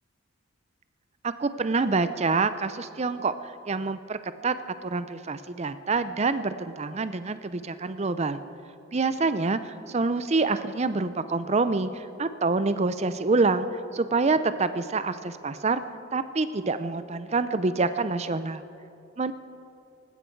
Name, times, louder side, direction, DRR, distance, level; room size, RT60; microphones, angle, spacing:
voice 1, 1.2-3.3 3.7-8.4 8.9-13.7 13.9-15.8 16.1-18.6 19.2-19.3, right 3 dB, 30° right, 12 dB, 0.5 m, -26 dB
19.0 x 16.0 x 4.6 m, 2.6 s
head